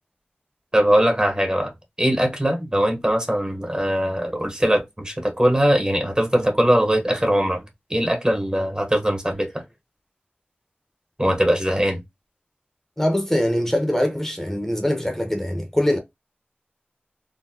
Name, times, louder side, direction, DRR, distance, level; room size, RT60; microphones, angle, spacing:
voice 1, 0.7-1.7 2.0-7.6 7.9-9.6 11.2-12.0, equal, 20° right, 0.9 m, -21 dB
voice 2, 13.0-16.0, left 1 dB, 10° left, 0.7 m, -22 dB
3.8 x 2.1 x 2.7 m
wide cardioid pair, 45°, 4 cm